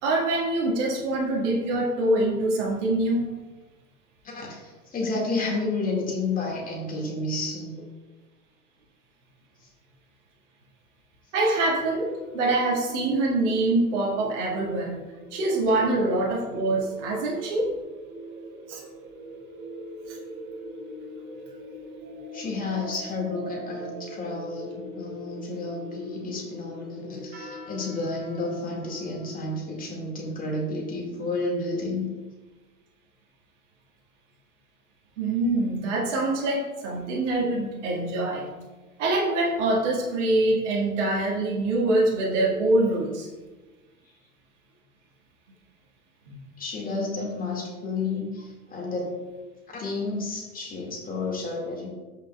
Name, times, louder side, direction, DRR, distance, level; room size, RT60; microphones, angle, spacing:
voice 1, 0.0-3.3 11.3-15.0 15.3-17.7 18.7-18.8 35.2-38.5 39.0-43.3 46.3-46.4, right 2 dB, 50° right, -3 dB, 2.0 m, -24 dB
voice 2, 4.2-7.8 22.3-32.1 46.6-49.3 49.7-51.9, left 3 dB, 20° left, -1 dB, 2.2 m, -31 dB
sound 1, 11.8-29.5, equal, 35° right, 2.0 m, -41 dB
13.5 x 5.7 x 2.4 m, 1.2 s
figure-of-eight pair, 90°, 44 cm